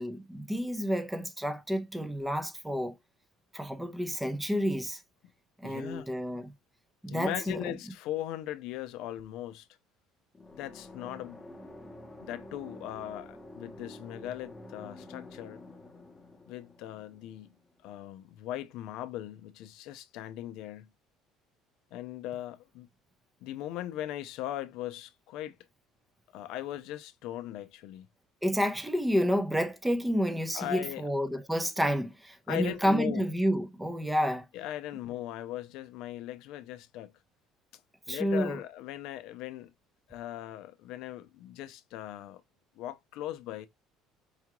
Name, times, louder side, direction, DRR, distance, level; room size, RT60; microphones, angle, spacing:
voice 1, 0.0-2.9 3.5-5.0 5.6-6.5 7.0-7.7 28.4-34.5 38.1-38.6, equal, 5° right, 0.5 m, -30 dB
voice 2, 5.6-6.1 7.1-9.7 10.5-11.4 12.2-15.6 16.5-17.5 17.8-20.9 21.9-22.9 23.4-25.5 26.3-28.1 30.5-31.0 32.5-33.2 34.5-37.1 38.1-39.7 40.1-42.4 42.8-43.7, left 13 dB, 70° left, 0.4 m, -39 dB
sound 1, 10.3-18.0, left 1 dB, 10° left, 0.8 m, -49 dB
4.8 x 2.2 x 2.9 m
cardioid pair, 145°, 0 cm